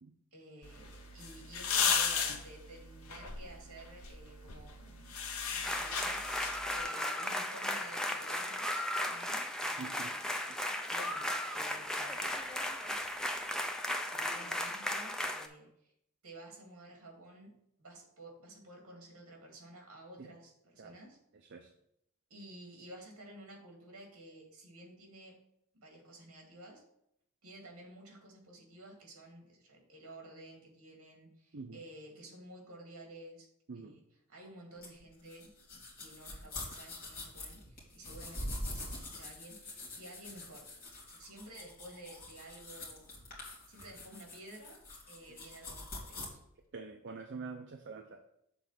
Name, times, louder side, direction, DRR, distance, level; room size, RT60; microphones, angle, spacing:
voice 1, 0.3-5.1 5.5-6.2 6.7-10.2 10.9-12.4 14.0-15.9 16.2-17.5 17.8-21.2 22.3-25.4 25.7-26.8 27.4-33.5 33.7-34.0 34.3-40.7 41.1-43.1 43.7-44.8 45.1-46.4, right 1 dB, 70° right, 0 dB, 2.3 m, -52 dB
sound 1, 0.6-6.8, left 6 dB, 70° left, 0.9 m, -36 dB
sound 2, 5.6-15.5, left 1 dB, 5° left, 0.4 m, -36 dB
voice 2, 9.8-10.2 10.5-10.6 20.2-20.3 20.8-21.0 21.3-21.7 31.5-31.8 33.7-34.0 45.3-45.5 46.7-48.3, right 4 dB, 50° right, 4 dB, 0.5 m, -46 dB
sound 3, 34.8-46.3, left 1 dB, 40° left, 2.4 m, -45 dB
7.0 x 4.0 x 5.8 m, 0.75 s
head